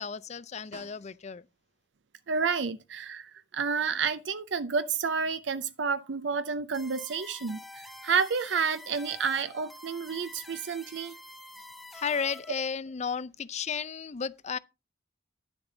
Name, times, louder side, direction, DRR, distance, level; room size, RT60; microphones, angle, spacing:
voice 1, 0.0-1.4 11.9-14.6, left 6 dB, 40° left, 0.5 m, -33 dB
Snare drum, 0.7-1.6 6.1-6.2, right 2 dB, 85° right, 1.9 m, -54 dB
voice 2, 2.3-11.1, right 5 dB, 70° right, 0.6 m, -30 dB
sound 1, 6.7-12.7, left 1 dB, ahead, 0.9 m, -48 dB
10.5 x 7.2 x 3.9 m
head